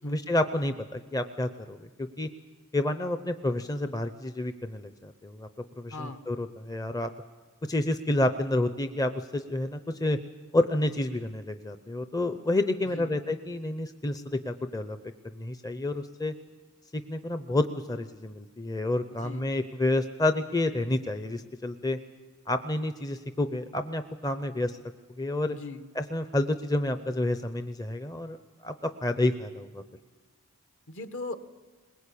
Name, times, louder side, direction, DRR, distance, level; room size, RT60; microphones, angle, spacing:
voice 1, 0.0-2.3 2.7-5.5 5.8-7.1 7.7-10.2 10.5-15.0 15.3-16.3 16.9-22.0 22.5-24.8 25.2-25.6 26.0-28.4 28.6-29.8, left 1 dB, 15° left, 9 dB, 0.6 m, -29 dB
voice 2, 5.9-6.3 12.9-13.2 19.2-19.5 25.5-25.9 30.9-31.3, left 2 dB, 60° left, 9 dB, 1.3 m, -39 dB
21.5 x 20.5 x 8.5 m, 1.4 s
head